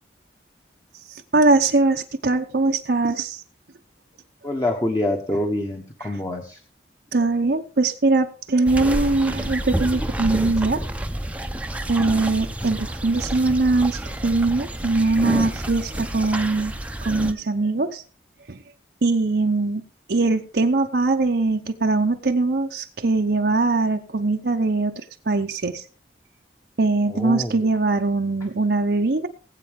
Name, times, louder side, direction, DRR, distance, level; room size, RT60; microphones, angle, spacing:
voice 1, 1.1-3.4 6.0-6.2 7.1-10.8 11.9-16.7 17.0-18.0 18.5-18.6 19.0-19.8 20.1-25.8 26.8-29.3, right 3 dB, 65° right, 4 dB, 0.8 m, -21 dB
voice 2, 4.4-6.6 27.1-27.5, left 1 dB, 20° left, 2 dB, 1.1 m, -26 dB
sound 1, 8.7-17.3, right 1 dB, 10° right, 0.7 m, -29 dB
20.0 x 8.3 x 3.6 m, 0.39 s
head